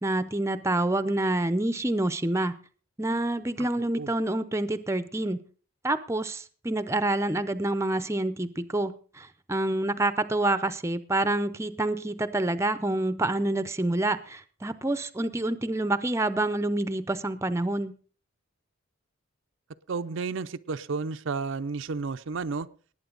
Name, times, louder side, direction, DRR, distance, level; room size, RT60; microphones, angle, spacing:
voice 1, 0.0-2.6 3.0-5.4 5.8-18.0, right 2 dB, 15° right, 12 dB, 0.6 m, -27 dB
voice 2, 3.6-4.1 19.9-22.7, right 4 dB, 60° right, 10 dB, 0.5 m, -32 dB
19.5 x 8.8 x 3.9 m, 0.39 s
head